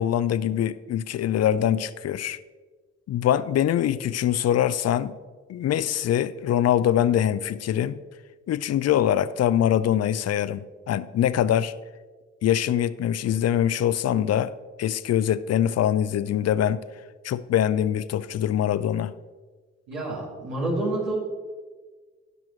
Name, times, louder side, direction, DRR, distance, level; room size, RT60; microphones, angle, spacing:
voice 1, 0.0-2.4 3.1-5.2 5.5-8.0 8.5-11.7 12.4-14.5 14.8-16.8 17.2-19.1, left 10 dB, 50° left, 16 dB, 0.5 m, -23 dB
voice 2, 19.9-21.1, right 2 dB, 90° right, -6 dB, 2.3 m, -28 dB
16.0 x 6.0 x 3.2 m, 1.4 s
hypercardioid pair, 40°, 32 cm